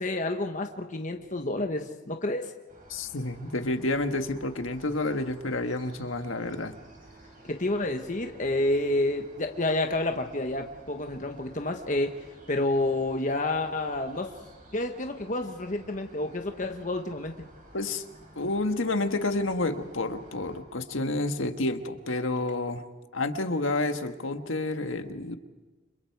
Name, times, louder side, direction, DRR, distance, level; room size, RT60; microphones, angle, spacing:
voice 1, 0.0-2.5 7.5-12.1 12.5-14.3 14.7-17.3, left 2 dB, 40° left, 5 dB, 1.2 m, -29 dB
sound 1, 2.7-20.6, right 1 dB, 40° right, 6.4 m, -52 dB
voice 2, 2.9-6.7 17.7-18.0 18.3-22.8 23.1-25.4, left 2 dB, 85° left, 7 dB, 1.6 m, -29 dB
29.5 x 27.0 x 4.7 m, 1.2 s
head